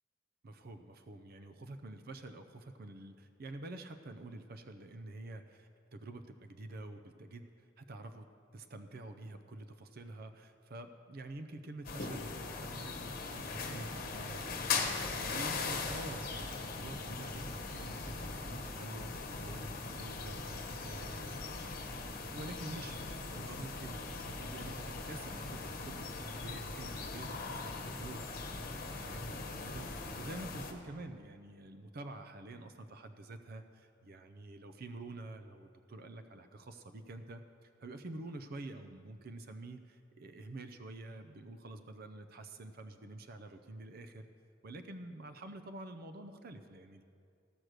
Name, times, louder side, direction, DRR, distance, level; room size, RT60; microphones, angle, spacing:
voice 1, 0.4-8.3 8.5-21.8 22.3-44.3 44.6-47.0, right 2 dB, 50° right, 8 dB, 0.5 m, -48 dB
sound 1, 11.8-30.7, left 4 dB, 45° left, 1.1 m, -40 dB
15.0 x 6.2 x 6.5 m, 2.5 s
head